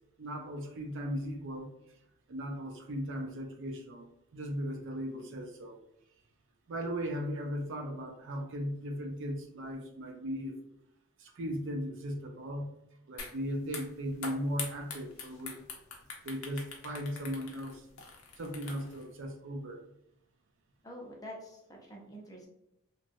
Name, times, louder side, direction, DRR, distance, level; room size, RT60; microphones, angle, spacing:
voice 1, 0.2-1.7 2.3-5.8 6.7-10.5 11.2-12.8 13.1-15.6 16.2-17.9 18.4-19.8, equal, 55° right, 3 dB, 0.5 m, -37 dB
sound 1, 13.2-13.4 13.7-19.0, left 5 dB, 65° left, 0.6 m, -43 dB
voice 2, 20.8-22.5, equal, 15° left, -1 dB, 0.5 m, -46 dB
2.9 x 2.6 x 2.6 m, 0.80 s
head